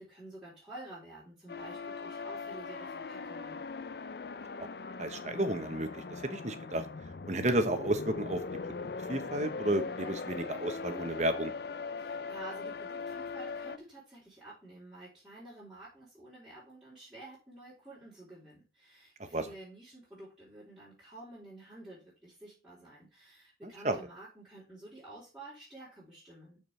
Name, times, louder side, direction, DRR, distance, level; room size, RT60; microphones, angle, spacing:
voice 1, 0.0-3.6 12.0-26.6, right 1 dB, ahead, -11 dB, 3.5 m, -50 dB
sound 1, 1.5-13.8, left 4 dB, 65° left, 0.5 m, -40 dB
voice 2, 5.0-6.8 7.3-8.4 9.1-11.5 19.2-19.4 23.6-24.0, right 1 dB, 40° right, 8 dB, 1.0 m, -32 dB
12.5 x 4.7 x 3.3 m, 0.31 s
head